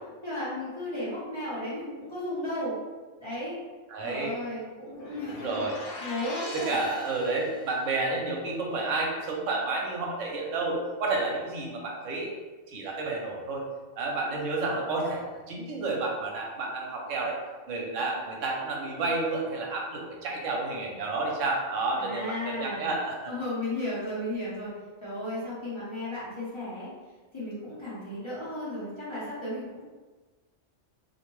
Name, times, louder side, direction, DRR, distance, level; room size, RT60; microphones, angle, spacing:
voice 1, 0.2-2.8 3.2-3.6 4.0-6.7 22.0-23.0 23.3-24.7 25.0-26.9 27.3-29.8, left 1 dB, 25° left, -11 dB, 0.8 m, -34 dB
voice 2, 3.9-4.4 5.3-5.8 6.5-12.3 12.7-13.6 14.0-17.4 17.7-23.3, right 3 dB, 80° right, -1 dB, 1.0 m, -30 dB
sound 1, 4.9-7.8, left 2 dB, 65° left, 0.9 m, -42 dB
2.6 x 2.1 x 3.0 m, 1.3 s
omnidirectional pair, 1.3 m